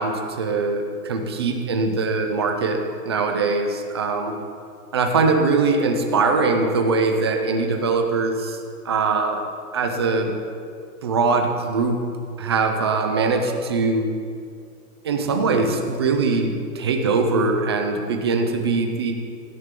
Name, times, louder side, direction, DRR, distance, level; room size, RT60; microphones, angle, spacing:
voice 1, 0.0-2.8 3.0-4.3 4.9-8.6 8.8-9.4 9.7-10.3 11.0-12.0 12.4-14.1 15.0-19.1, right 4 dB, 20° right, 3 dB, 0.4 m, -22 dB
17.5 x 11.0 x 3.7 m, 2.3 s
hypercardioid pair, 160°, 47 cm